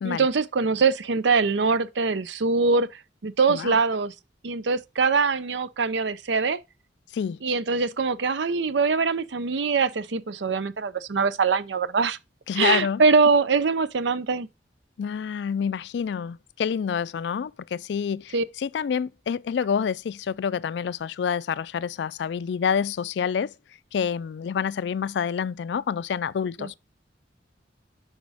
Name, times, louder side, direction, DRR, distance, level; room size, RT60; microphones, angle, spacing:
voice 1, 0.0-4.1 4.4-6.6 7.4-12.2 12.6-14.5 18.3-18.4 26.6-26.7, right 4 dB, 70° right, 0.6 m, -23 dB
voice 2, 12.5-13.0 15.0-23.5 23.9-26.7, left 7 dB, 65° left, 0.3 m, -28 dB
6.2 x 5.2 x 4.8 m
head